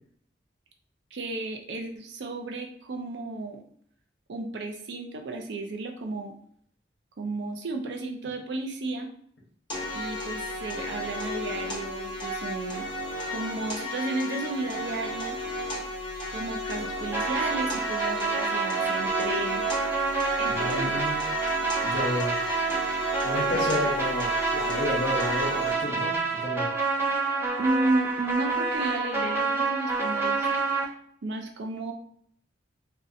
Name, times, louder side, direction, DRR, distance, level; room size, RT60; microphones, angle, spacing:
voice 1, 1.1-3.6 4.3-6.3 7.2-9.1 9.9-12.9 13.3-15.4 16.3-19.7 20.4-21.0 27.6-30.6 31.2-31.9, right 2 dB, 70° right, 4 dB, 0.4 m, -33 dB
sound 1, 9.7-25.7, left 1 dB, 25° left, 0.8 m, -34 dB
sound 2, 17.1-30.8, right 4 dB, 15° right, 0.4 m, -28 dB
voice 2, 20.5-21.2 21.8-22.4 23.2-26.7, left 2 dB, 80° left, -2 dB, 0.8 m, -31 dB
2.7 x 2.1 x 2.5 m, 0.62 s
head